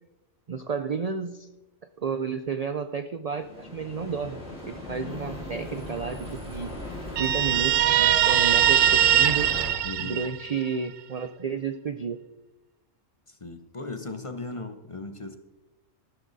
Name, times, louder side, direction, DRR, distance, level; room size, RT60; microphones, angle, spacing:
voice 1, 0.5-1.5 2.0-9.5 10.0-12.2, right 5 dB, 50° right, 10 dB, 0.5 m, -32 dB
sound 1, 3.3-9.7, left 1 dB, 5° right, 4.5 m, -37 dB
Guitar, 7.2-10.7, right 11 dB, 80° right, 0.9 m, -21 dB
voice 2, 9.8-10.2 13.3-15.4, left 3 dB, 30° left, 8 dB, 0.9 m, -37 dB
14.5 x 12.5 x 4.0 m, 1.0 s
omnidirectional pair, 1.3 m